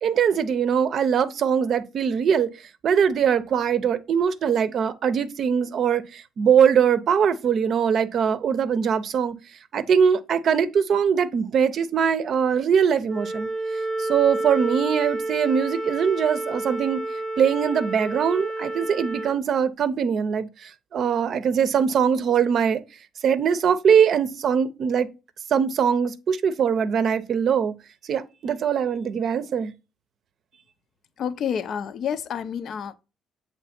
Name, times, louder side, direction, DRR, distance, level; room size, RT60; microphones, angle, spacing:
voice 1, 0.0-2.5 2.8-9.3 9.7-13.5 14.0-17.0 17.4-22.8 23.2-25.1 25.5-27.7 28.1-29.7, right 7 dB, 50° right, 0.6 m, -22 dB
Wind instrument woodwind instrument, 13.1-19.4, right 2 dB, 20° right, 0.8 m, -29 dB
voice 2, 31.2-33.0, left 8 dB, 50° left, 0.5 m, -29 dB
7.4 x 3.2 x 4.2 m
cardioid pair, 130°, 0 cm